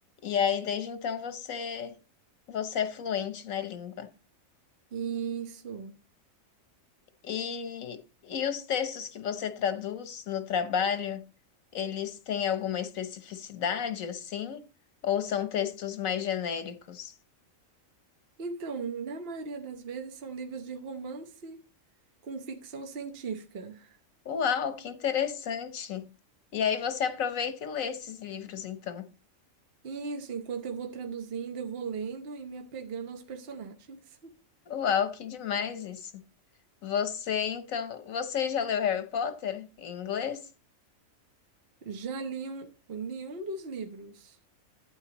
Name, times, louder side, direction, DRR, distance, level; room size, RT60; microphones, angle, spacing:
voice 1, 0.2-1.9 2.5-4.1 7.2-11.3 11.7-14.6 15.0-17.1 24.2-26.1 26.5-29.1 34.7-36.2 36.8-40.5, left 8 dB, 80° left, 1.4 m, -31 dB
voice 2, 4.9-5.9 18.4-21.6 22.2-24.0 29.8-34.3 41.8-44.4, right 5 dB, 50° right, 1.2 m, -37 dB
11.5 x 9.0 x 3.0 m
omnidirectional pair, 1.4 m